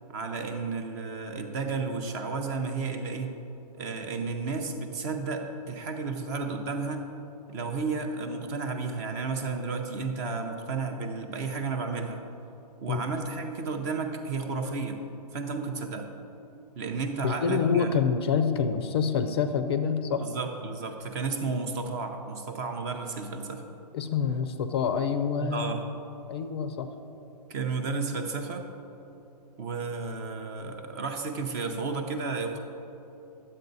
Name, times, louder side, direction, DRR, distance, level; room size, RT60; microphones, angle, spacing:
voice 1, 0.1-3.3 3.8-7.1 7.5-12.2 12.8-15.0 15.3-16.1 16.8-17.9 20.2-23.6 25.4-25.9 27.5-28.7 29.6-32.6, right 4 dB, 25° right, 5 dB, 0.6 m, -32 dB
voice 2, 17.2-20.3 23.9-25.7 26.3-26.9, left 6 dB, 40° left, 9 dB, 0.5 m, -27 dB
10.5 x 7.7 x 4.0 m, 2.9 s
hypercardioid pair, 160°, 21 cm